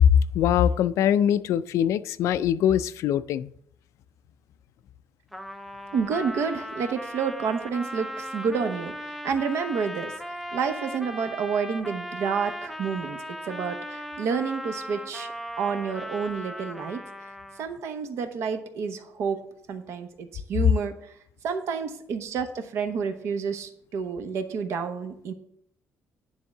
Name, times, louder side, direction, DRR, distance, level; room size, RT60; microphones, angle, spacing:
voice 1, 0.0-3.5, left 9 dB, 75° left, 0.4 m, -22 dB
Trumpet, 5.3-17.8, equal, ahead, 0.5 m, -38 dB
voice 2, 5.9-13.2 13.4-17.3 17.6-19.4 19.7-21.1 21.4-25.3, right 6 dB, 65° right, 1.0 m, -29 dB
10.5 x 3.6 x 6.5 m
cardioid pair, 155°, 5 cm